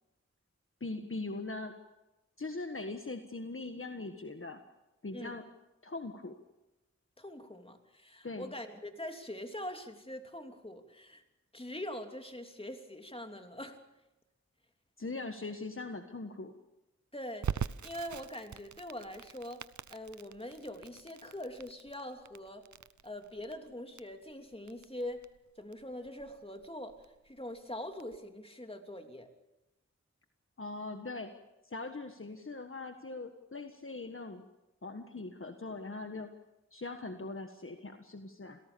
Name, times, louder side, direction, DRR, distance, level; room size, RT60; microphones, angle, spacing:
voice 1, 0.8-1.7 2.4-4.6 5.0-5.4 5.8-6.4 8.2-8.5 15.0-16.5 30.6-31.3 31.6-34.4 34.8-36.3 36.7-38.6, left 3 dB, 45° left, 6 dB, 1.5 m, -41 dB
voice 2, 7.2-11.2 11.5-13.8 17.1-19.6 19.9-22.7 23.0-25.3 25.6-27.0 27.2-29.3, left 1 dB, 20° left, 5 dB, 3.0 m, -43 dB
Crackle, 17.4-28.2, right 7 dB, 80° right, 0.7 m, -43 dB
27.5 x 17.5 x 7.0 m, 0.97 s
wide cardioid pair, 50°, 29 cm